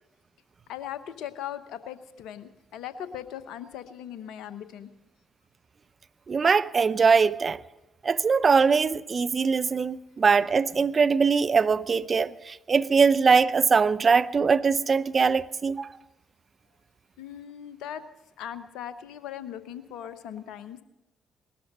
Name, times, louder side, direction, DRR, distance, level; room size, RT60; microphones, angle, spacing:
voice 1, 0.7-4.9 17.2-18.0 18.4-20.8, left 10 dB, 70° left, 1.0 m, -39 dB
voice 2, 6.3-7.6 8.0-15.9, right 5 dB, 40° right, 0.6 m, -22 dB
19.5 x 13.0 x 5.4 m
hypercardioid pair, 45°, 0 cm